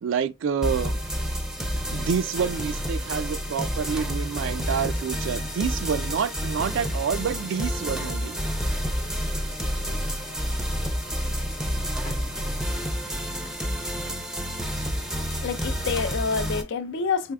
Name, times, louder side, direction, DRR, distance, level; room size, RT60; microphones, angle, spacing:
voice 1, 0.0-1.0 1.6-8.4 13.8-14.2, right 7 dB, 65° right, 0.3 m, -28 dB
sound 1, 0.6-16.6, equal, 5° right, 0.5 m, -29 dB
sound 2, 4.6-13.8, left 2 dB, 40° left, 0.8 m, -45 dB
voice 2, 15.3-17.3, left 5 dB, 60° left, 0.4 m, -28 dB
3.5 x 3.3 x 2.3 m
head